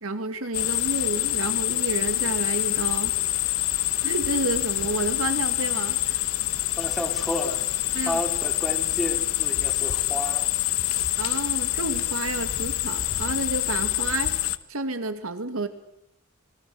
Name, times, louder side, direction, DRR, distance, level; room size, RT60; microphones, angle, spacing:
voice 1, 0.0-3.1 4.0-6.2 7.9-8.2 11.2-14.3 14.7-15.7, right 2 dB, 75° right, 9 dB, 2.6 m, -30 dB
sound 1, 0.5-14.6, left 14 dB, 80° left, 1.3 m, -26 dB
voice 2, 6.8-7.6 8.0-10.4, equal, ahead, 3 dB, 4.4 m, -31 dB
28.0 x 23.5 x 8.0 m, 0.74 s
head